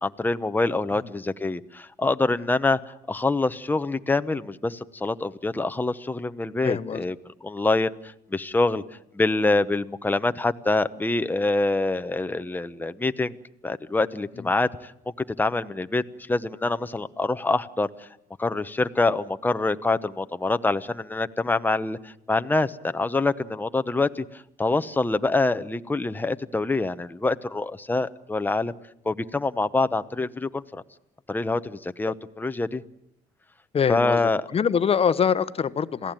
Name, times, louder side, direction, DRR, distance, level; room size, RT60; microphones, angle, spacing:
voice 1, 0.0-7.2 7.4-8.8 9.1-13.3 13.6-14.9 15.4-16.0 16.3-18.1 18.4-24.2 24.6-28.7 29.0-30.8 31.3-32.8 33.9-34.4, left 2 dB, 10° left, 11 dB, 1.0 m, -25 dB
voice 2, 6.6-7.0 14.4-14.5 33.7-36.1, left 7 dB, 35° left, 14 dB, 1.1 m, -24 dB
27.5 x 17.0 x 9.1 m, 0.80 s
cardioid pair, 110°, 17 cm